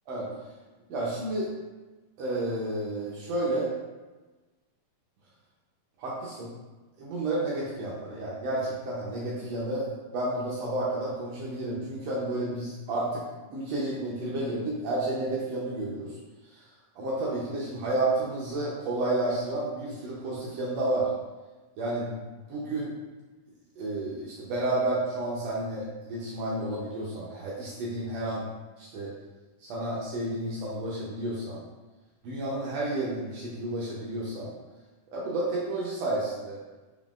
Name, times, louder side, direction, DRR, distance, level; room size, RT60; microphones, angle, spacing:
voice 1, 0.9-1.5 2.2-3.7 6.0-6.5 7.0-13.2 13.5-16.1 16.9-21.1 21.8-22.2 22.5-22.9 23.8-28.4 28.8-29.1 29.6-31.6 32.2-34.5 35.1-36.6, right 2 dB, 80° right, -5 dB, 1.5 m, -31 dB
5.2 x 3.7 x 2.4 m, 1.2 s
omnidirectional pair, 3.9 m